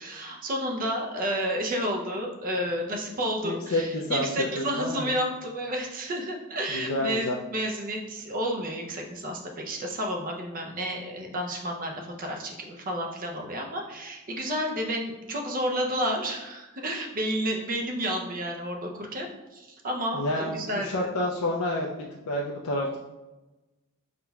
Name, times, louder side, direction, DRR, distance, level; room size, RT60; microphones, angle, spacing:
voice 1, 0.0-21.2, equal, 40° right, 1 dB, 0.6 m, -31 dB
voice 2, 3.4-5.1 6.7-7.4 20.1-21.9 22.3-23.0, left 1 dB, 75° left, -2 dB, 0.5 m, -29 dB
5.3 x 3.7 x 2.3 m, 1.1 s
head